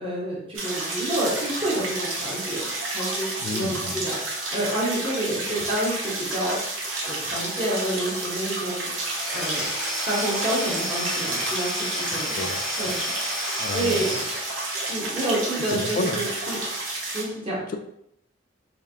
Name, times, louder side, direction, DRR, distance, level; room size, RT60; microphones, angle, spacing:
voice 1, 0.0-2.6 2.9-4.1 4.5-6.8 7.0-8.9 9.3-9.7 10.1-12.3 12.8-13.0 13.6-14.1 14.9-16.6 17.1-17.6, right 1 dB, 30° right, -8 dB, 1.1 m, -28 dB
sound 1, 0.5-17.2, right 2 dB, 85° right, 0.8 m, -31 dB
voice 2, 3.4-4.0 12.1-12.9 13.6-14.2 15.7-16.2, left 2 dB, 45° left, 6 dB, 0.3 m, -31 dB
Domestic sounds home sounds / Tools, 9.0-15.1, left 1 dB, ahead, 1.0 m, -32 dB
3.5 x 2.5 x 3.4 m, 0.75 s
head